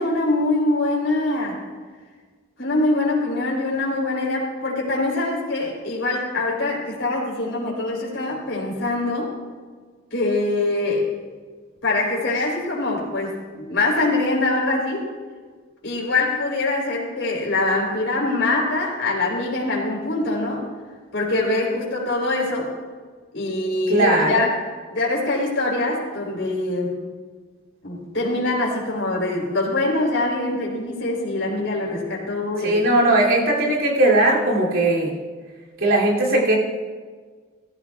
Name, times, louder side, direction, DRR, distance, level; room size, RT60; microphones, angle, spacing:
voice 1, 0.0-1.6 2.6-9.3 10.1-11.1 11.8-15.1 15.8-20.7 21.1-22.7 23.3-24.5 24.9-27.1 27.8-32.8, left 2 dB, 70° left, -3 dB, 3.6 m, -23 dB
voice 2, 23.9-24.4 32.6-35.1 35.8-36.6, right 1 dB, 90° right, -2 dB, 2.8 m, -18 dB
17.5 x 14.0 x 2.3 m, 1.5 s
head